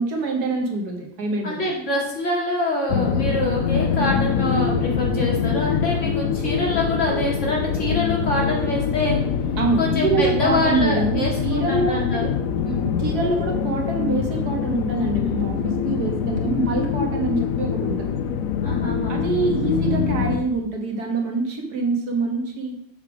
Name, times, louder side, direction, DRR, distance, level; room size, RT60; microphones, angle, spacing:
voice 1, 0.0-1.7 9.6-12.2 13.0-18.1 19.1-22.7, right 3 dB, 70° right, 2 dB, 1.8 m, -25 dB
voice 2, 1.4-9.2 9.8-12.3 12.6-12.9 18.6-19.2, left 1 dB, 45° left, -3 dB, 2.6 m, -25 dB
sound 1, 2.9-20.4, left 7 dB, 65° left, 0.9 m, -24 dB
7.4 x 6.7 x 4.8 m, 0.71 s
omnidirectional pair, 1.8 m